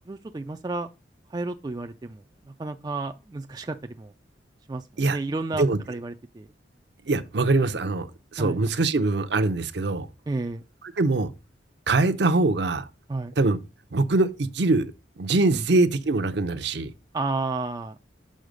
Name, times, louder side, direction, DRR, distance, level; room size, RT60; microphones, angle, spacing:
voice 1, 0.1-0.9 1.3-4.1 4.7-6.5 8.4-8.6 10.3-10.6 13.1-13.3 15.5-15.6 17.1-18.0, right 3 dB, 20° right, 0.3 m, -32 dB
voice 2, 7.1-8.1 8.3-10.1 11.0-11.3 11.9-12.9 13.4-13.6 13.9-16.9, right 2 dB, 60° right, 0.6 m, -23 dB
6.4 x 4.7 x 5.1 m
head